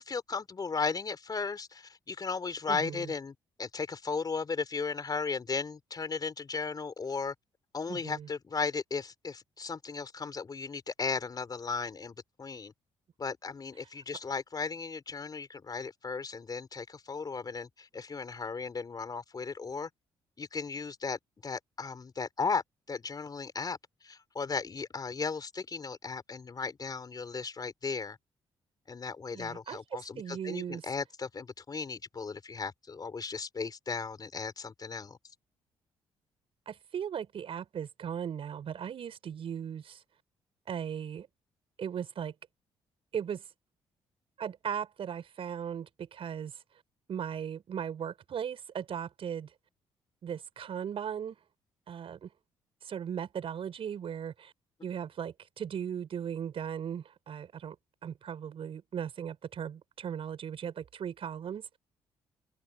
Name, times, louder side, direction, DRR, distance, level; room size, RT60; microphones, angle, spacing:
voice 1, 0.0-7.3 7.7-12.7 13.2-19.9 20.4-22.6 22.9-23.8 24.0-28.2 28.9-35.2, left 5 dB, 40° left, 4.2 m, -36 dB
voice 2, 2.7-3.1 7.9-8.3 29.3-30.8 36.7-40.0 40.7-41.3 41.8-42.3 43.1-43.4 44.4-46.5 47.1-49.5 50.2-51.4 51.9-52.3 52.8-54.5 54.8-57.8 58.0-61.8, right 8 dB, 60° right, 5.5 m, -37 dB
open air
supercardioid pair, 60°, 11 cm